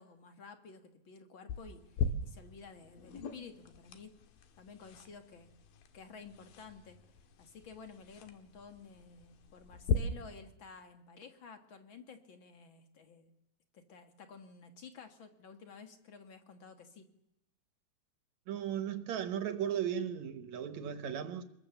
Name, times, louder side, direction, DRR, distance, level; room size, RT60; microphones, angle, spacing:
voice 1, 0.0-4.2 4.6-5.5 5.9-7.0 7.4-13.3 13.7-17.1, left 5 dB, 50° left, 1.6 m, -52 dB
sound 1, 1.5-9.9, left 6 dB, 80° left, 3.2 m, -40 dB
voice 2, 18.5-21.4, right 9 dB, 65° right, 2.1 m, -36 dB
26.0 x 22.0 x 7.0 m
omnidirectional pair, 4.1 m